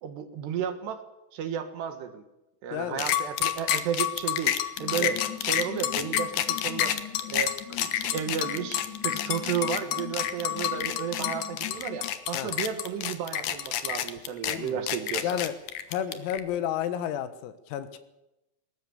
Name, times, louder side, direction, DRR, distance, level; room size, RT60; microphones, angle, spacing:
voice 1, 0.0-1.0 1.3-2.2 2.6-4.5 4.8-7.0 7.2-15.4, right 7 dB, 65° right, 8 dB, 3.2 m, -33 dB
voice 2, 2.7-3.1 4.9-5.2 12.3-12.5 14.5-14.9 15.2-15.5 15.9-18.0, left 10 dB, 90° left, 12 dB, 4.2 m, -32 dB
sound 1, 3.0-16.4, left 11 dB, 70° left, 2.3 m, -28 dB
sound 2, 4.8-12.1, left 12 dB, 50° left, 2.7 m, -42 dB
21.0 x 19.0 x 7.1 m, 0.93 s
omnidirectional pair, 5.9 m